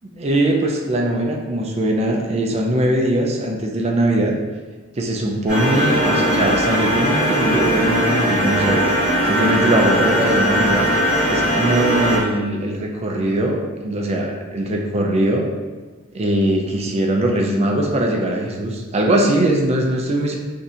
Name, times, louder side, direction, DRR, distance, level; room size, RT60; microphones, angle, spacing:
voice 1, 0.0-4.4 4.9-8.8 9.2-10.9 11.3-15.5 16.1-20.4, right 1 dB, 30° right, 1 dB, 0.4 m, -21 dB
sound 1, 5.5-12.2, equal, 40° left, 1.3 m, -19 dB
4.0 x 2.7 x 2.4 m, 1.3 s
head